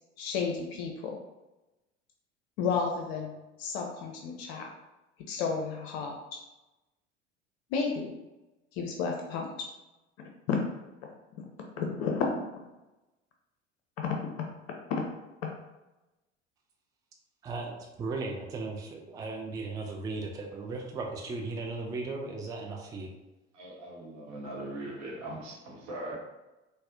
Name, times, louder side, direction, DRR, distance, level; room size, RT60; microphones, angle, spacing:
voice 1, 0.2-1.2 2.6-3.3 3.6-4.7 5.3-6.4 7.7-8.1 8.7-9.7 10.2-10.6 11.4-11.5 11.8-12.4 14.0-14.2 14.9-15.0 15.4-15.5, left 5 dB, 55° left, 1 dB, 0.5 m, -32 dB
voice 2, 17.4-23.1, right 3 dB, 10° right, 0 dB, 0.3 m, -36 dB
voice 3, 23.5-26.2, right 1 dB, 55° right, -3 dB, 0.9 m, -40 dB
4.0 x 2.0 x 2.5 m, 1.0 s
figure-of-eight pair, 70°, 37 cm